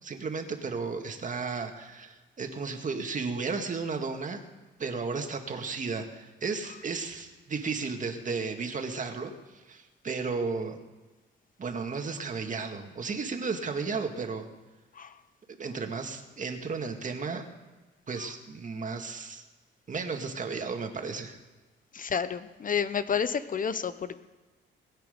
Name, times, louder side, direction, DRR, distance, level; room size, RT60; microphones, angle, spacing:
voice 1, 0.0-4.4 4.8-9.3 9.7-10.8 11.6-14.5 15.5-17.4 18.1-19.4 19.9-21.4, right 4 dB, 40° right, 5 dB, 2.0 m, -34 dB
voice 2, 21.9-24.2, left 7 dB, 45° left, 13 dB, 0.8 m, -30 dB
21.0 x 9.0 x 5.3 m, 1.3 s
cardioid pair, 90°, 20 cm